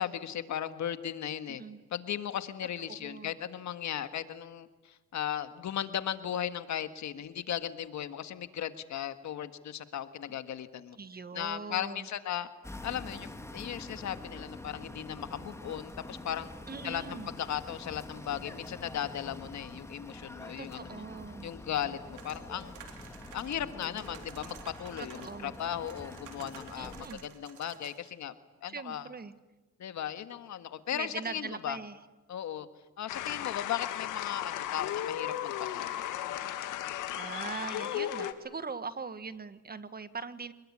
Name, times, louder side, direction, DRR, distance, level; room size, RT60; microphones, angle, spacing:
voice 1, 0.0-1.6 1.9-11.0 11.3-12.5 12.8-16.5 16.8-21.0 21.4-23.0 23.3-28.3 28.6-29.1 29.8-31.8 32.3-32.7 33.0-36.0, left 10 dB, 65° left, 10 dB, 1.7 m, -37 dB
voice 2, 1.5-1.8 2.9-3.3 11.0-12.1 16.7-17.3 20.6-21.5 25.0-25.6 26.8-27.2 28.7-29.3 30.9-32.0 37.2-40.5, right 5 dB, 30° right, 13 dB, 1.6 m, -41 dB
sound 1, 12.6-27.1, left 1 dB, 10° left, 2.2 m, -46 dB
sound 2, 22.1-25.6 25.9-28.1, right 8 dB, 90° right, 3.5 m, -52 dB
sound 3, 33.1-38.3, left 12 dB, 90° left, 1.8 m, -35 dB
26.5 x 21.0 x 9.9 m, 1.1 s
cardioid pair, 90°, 30 cm